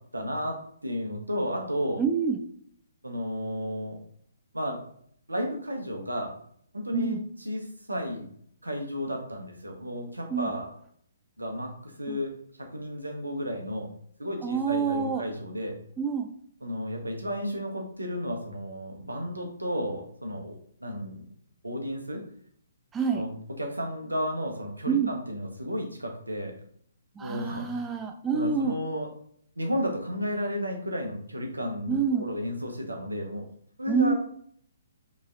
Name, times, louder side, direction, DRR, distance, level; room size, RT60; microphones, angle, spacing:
voice 1, 0.1-2.0 3.0-4.0 4.5-4.8 5.3-6.3 6.8-7.2 7.4-8.3 8.6-10.7 11.4-11.7 12.0-12.3 12.7-13.9 14.2-15.7 16.6-21.3 21.6-22.2 23.1-23.3 23.6-26.5 27.2-27.7 28.3-29.1 29.6-33.5 33.8-34.1, equal, 85° right, 2 dB, 1.0 m, -32 dB
voice 2, 2.0-2.4 6.9-7.2 10.3-10.5 12.1-12.2 14.4-15.3 16.0-16.3 22.9-23.2 24.9-25.1 27.2-28.8 31.9-32.3 33.9-34.1, right 6 dB, 10° right, 4 dB, 0.4 m, -27 dB
5.3 x 3.2 x 2.5 m, 0.63 s
figure-of-eight pair, 130°, 0 cm